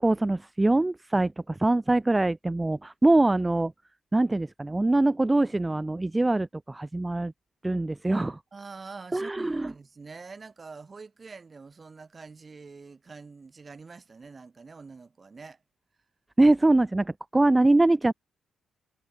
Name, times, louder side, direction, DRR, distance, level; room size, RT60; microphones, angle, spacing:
voice 1, 0.0-3.7 4.1-7.3 7.6-8.4 9.1-9.7 16.4-18.1, right 2 dB, 15° right, 0.4 m, -23 dB
voice 2, 8.5-15.6, right 4 dB, 35° right, 1.9 m, -45 dB
cardioid pair, 95°, 0 cm